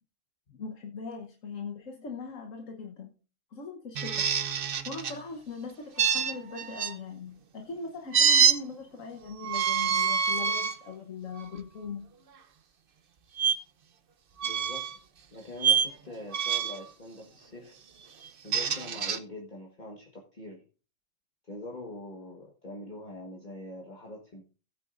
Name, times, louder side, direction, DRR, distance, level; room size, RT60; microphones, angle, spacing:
voice 1, 0.5-3.1 3.5-4.3 4.6-12.1, left 4 dB, 80° left, 1.5 m, -40 dB
sound 1, 3.9-5.2 6.0-6.9 8.1-8.6 9.4-10.8 11.4-11.6 13.4-13.5 14.4-15.0 15.6-15.9 16.3-16.8 18.2-19.2, right 7 dB, 50° right, 0.9 m, -26 dB
voice 2, 14.4-14.9 15.3-17.8 18.4-20.6 21.4-24.4, left 1 dB, 35° left, 1.7 m, -43 dB
16.5 x 9.1 x 2.5 m
omnidirectional pair, 1.3 m